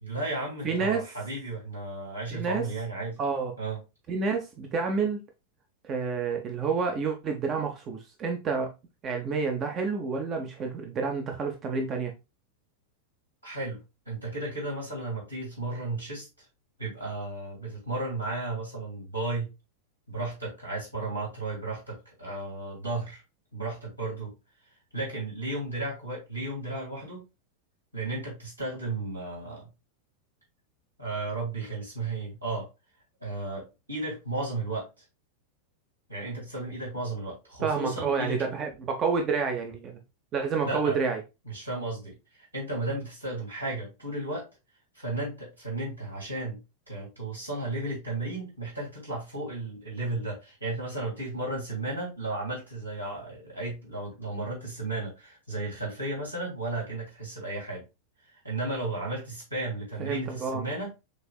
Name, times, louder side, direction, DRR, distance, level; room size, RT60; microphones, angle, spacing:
voice 1, 0.0-3.2 3.6-3.8 13.4-13.8 14.1-16.3 16.8-19.5 20.1-23.2 23.5-24.3 24.9-27.2 27.9-29.7 31.0-32.7 33.2-34.9 36.1-38.5 40.7-41.0 41.5-44.5 44.9-46.6 46.9-57.8 58.4-60.9, right 2 dB, 85° right, 2.6 m, -34 dB
voice 2, 0.6-1.0 2.3-2.6 3.2-3.5 4.1-5.2 5.8-8.7 9.0-12.1 37.6-40.0 40.3-41.2 60.0-60.6, right 5 dB, 30° right, 0.6 m, -29 dB
6.4 x 2.6 x 2.3 m
figure-of-eight pair, 90°, 0 cm